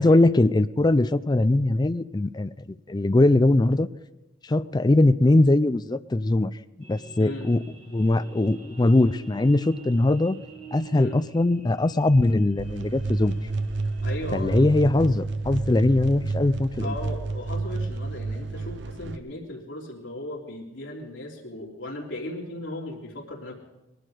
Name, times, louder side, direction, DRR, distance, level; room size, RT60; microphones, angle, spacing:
voice 1, 0.0-3.9 4.5-6.5 6.9-7.6 7.9-10.4 10.7-13.3 14.3-16.9, left 2 dB, 20° left, 13 dB, 0.4 m, -21 dB
sound 1, 6.8-14.3, right 3 dB, 30° right, 4.1 m, -46 dB
voice 2, 7.2-7.5 10.9-11.2 14.0-14.7 16.8-23.5, left 1 dB, 80° left, -2 dB, 3.2 m, -37 dB
sound 2, 12.6-19.2, right 3 dB, 65° right, 0.7 m, -30 dB
21.0 x 12.0 x 4.9 m, 1.0 s
head